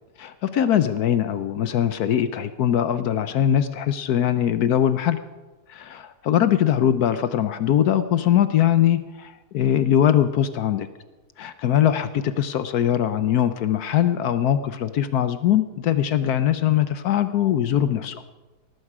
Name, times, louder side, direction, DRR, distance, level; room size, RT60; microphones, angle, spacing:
voice 1, 0.2-5.2 5.7-10.9 11.4-18.2, left 10 dB, 70° left, 12 dB, 1.2 m, -21 dB
18.5 x 15.0 x 4.9 m, 1.1 s
omnidirectional pair, 1.8 m